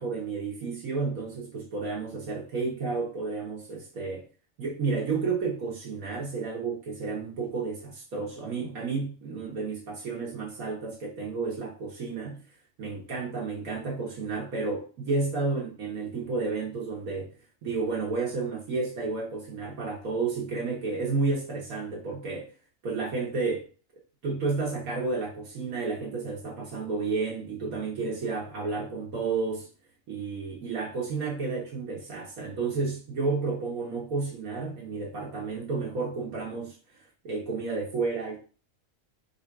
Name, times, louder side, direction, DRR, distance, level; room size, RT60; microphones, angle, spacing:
voice 1, 0.0-4.3 4.6-12.4 12.8-17.4 17.6-22.5 22.8-23.7 24.2-29.7 30.1-38.4, right 4 dB, 80° right, -3 dB, 1.7 m, -31 dB
3.6 x 2.6 x 4.6 m, 0.37 s
omnidirectional pair, 1.4 m